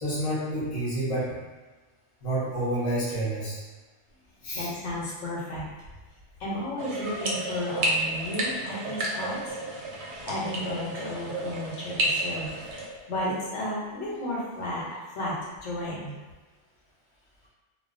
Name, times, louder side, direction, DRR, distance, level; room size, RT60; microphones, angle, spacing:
voice 1, 0.0-1.4 2.2-3.6 4.4-4.7, right 1 dB, 35° left, -8 dB, 0.7 m, -29 dB
voice 2, 4.5-5.7 6.4-9.6 10.2-12.5 13.1-16.1, left 1 dB, 75° left, -6 dB, 0.9 m, -33 dB
sound 1, 6.8-12.9, right 1 dB, 70° right, 0.8 m, -31 dB
2.3 x 2.2 x 2.4 m, 1.3 s
omnidirectional pair, 1.3 m